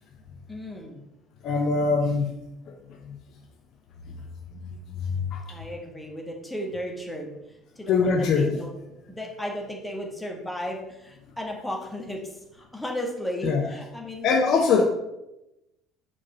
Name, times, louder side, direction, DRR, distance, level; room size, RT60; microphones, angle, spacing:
voice 1, 0.5-1.0 5.5-8.7 9.1-14.3 14.8-14.9, equal, 10° left, 0 dB, 1.4 m, -35 dB
voice 2, 1.4-2.3 2.7-2.8 3.0-3.2 4.5-4.8 5.0-5.4 7.9-8.5 13.4-13.6 14.2-14.9, left 4 dB, 50° left, 3 dB, 0.6 m, -23 dB
4.8 x 4.2 x 5.3 m, 0.92 s
figure-of-eight pair, 60°, 0 cm